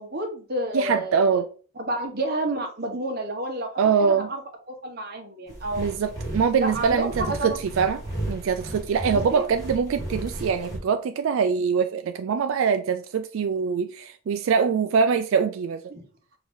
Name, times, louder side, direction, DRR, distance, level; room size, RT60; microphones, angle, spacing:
voice 1, 0.0-1.4 1.8-4.4 4.7-5.9 6.6-7.6 9.3-9.5 15.9-16.0, right 1 dB, 45° right, 1.1 m, -30 dB
voice 2, 0.7-1.5 3.8-4.3 5.8-8.0 8.3-15.9, right 6 dB, 65° right, 0.3 m, -23 dB
sound 1, 5.5-10.8, right 1 dB, 15° left, 1.4 m, -34 dB
4.8 x 2.7 x 3.6 m
head